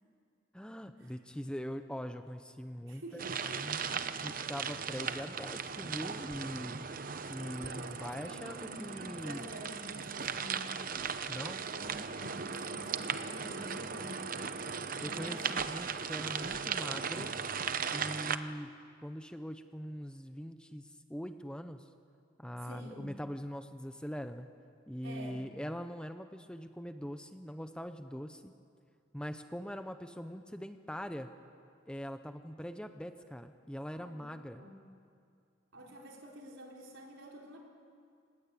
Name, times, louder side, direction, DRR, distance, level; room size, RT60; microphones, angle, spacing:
voice 1, 0.5-3.2 3.5-6.8 7.3-9.4 11.3-11.6 15.0-17.3 17.9-18.7 19.0-21.9 22.4-24.5 24.9-28.5 29.1-31.3 31.9-34.6, equal, 5° left, 8 dB, 0.7 m, -42 dB
voice 2, 2.9-3.9 7.6-10.8 11.6-14.5 14.8-15.5 22.5-23.1 25.0-25.4 33.9-34.8 35.7-37.6, equal, 70° right, 0 dB, 4.4 m, -49 dB
sound 1, 3.2-18.4, right 6 dB, 45° right, 0.8 m, -37 dB
28.0 x 19.5 x 8.5 m, 2.3 s
head